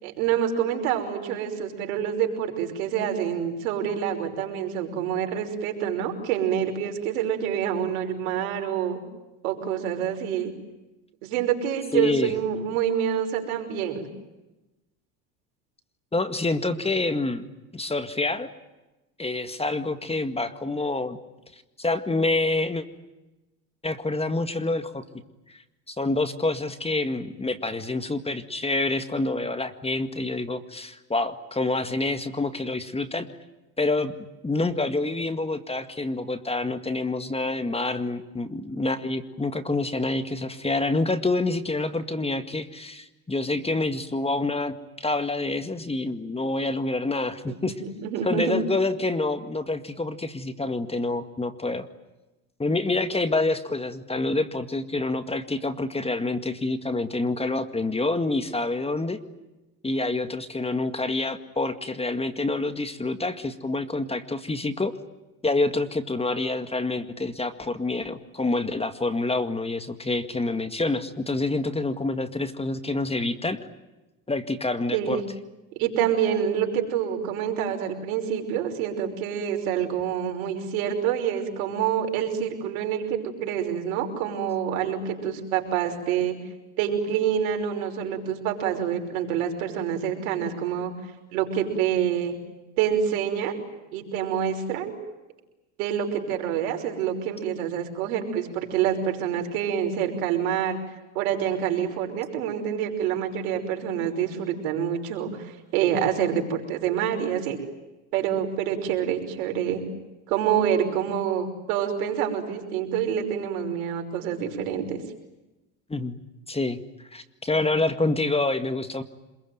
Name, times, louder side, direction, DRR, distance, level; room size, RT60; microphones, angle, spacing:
voice 1, 0.0-9.0 9.4-10.5 11.2-14.1 47.5-48.5 74.9-75.2 75.7-86.4 86.8-90.9 91.3-92.4 92.8-93.6 93.9-94.9 95.8-100.8 101.1-107.6 108.1-109.8 110.3-115.0, right 9 dB, 85° right, 4 dB, 5.6 m, -27 dB
voice 2, 11.9-12.3 16.1-17.4 17.7-18.5 19.2-21.2 21.8-22.8 23.8-25.0 25.5-25.6 25.9-33.3 33.8-34.1 34.4-47.7 48.2-51.9 52.6-59.2 59.8-64.9 65.4-73.6 74.3-75.2 115.9-116.2 116.5-116.8 117.1-119.0, left 2 dB, 15° left, 10 dB, 2.0 m, -27 dB
27.0 x 22.0 x 9.4 m, 1.0 s
supercardioid pair, 95°, 42 cm